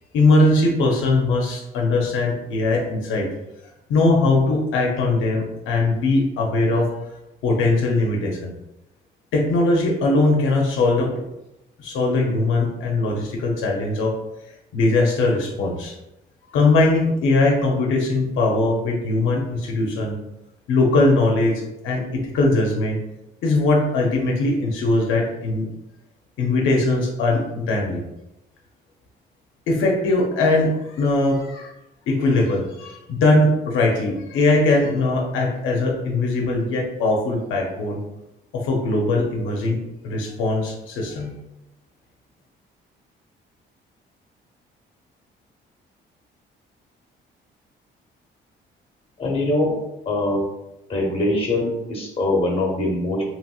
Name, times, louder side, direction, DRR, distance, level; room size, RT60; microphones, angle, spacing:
voice 1, 0.1-3.3 3.9-6.9 7.4-8.5 9.3-11.1 11.8-14.2 14.7-15.9 16.5-20.2 20.7-23.0 23.4-25.7 26.4-28.0 29.7-31.7 32.1-38.0 38.5-41.3, left 2 dB, 85° left, -1 dB, 0.6 m, -20 dB
voice 2, 49.2-49.7 50.0-50.4 50.9-53.2, left 2 dB, 30° left, 0 dB, 1.0 m, -22 dB
2.9 x 2.9 x 2.3 m, 0.91 s
cardioid pair, 90°, 20 cm